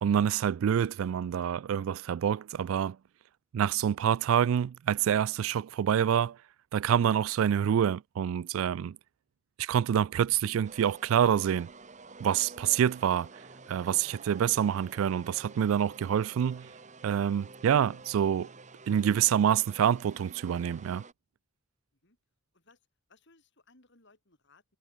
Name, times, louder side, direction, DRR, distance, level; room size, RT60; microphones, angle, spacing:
voice 1, 0.0-3.0 3.5-6.4 6.7-9.0 9.6-11.7 12.2-13.3 13.7-16.7 17.0-18.5 18.9-21.0, right 9 dB, 70° right, 0.3 m, -27 dB
sound 1, 10.6-21.1, right 3 dB, 35° right, 1.9 m, -50 dB
voice 2, 22.5-24.8, left 3 dB, 55° left, 4.0 m, -63 dB
head